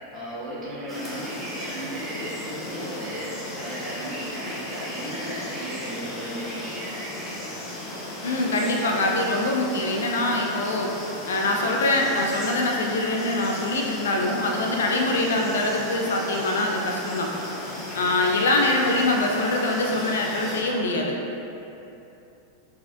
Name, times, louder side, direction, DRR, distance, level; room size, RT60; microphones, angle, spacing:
voice 1, 0.1-7.5 18.2-18.4, equal, 30° right, -9 dB, 1.5 m, -35 dB
sound 1, 0.9-20.6, left 1 dB, 20° left, 0.9 m, -36 dB
voice 2, 8.2-10.9 11.3-17.3 17.9-21.2, left 2 dB, 65° left, 1 dB, 0.4 m, -24 dB
4.5 x 4.1 x 2.5 m, 2.9 s
figure-of-eight pair, 90°, 0 cm